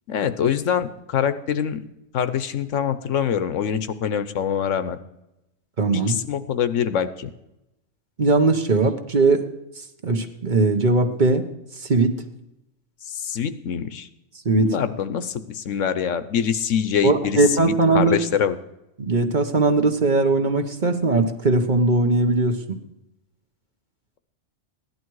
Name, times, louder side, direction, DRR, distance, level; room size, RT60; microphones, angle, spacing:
voice 1, 0.1-1.8 2.1-5.0 5.9-7.3 13.1-14.1 14.6-18.6, left 8 dB, 90° left, 12 dB, 1.2 m, -24 dB
voice 2, 5.8-6.2 8.2-9.5 10.0-11.5 11.8-12.2 14.4-14.7 17.0-18.2 19.0-22.8, right 3 dB, 40° right, 6 dB, 1.2 m, -19 dB
16.0 x 11.0 x 4.7 m, 0.91 s
omnidirectional pair, 1.3 m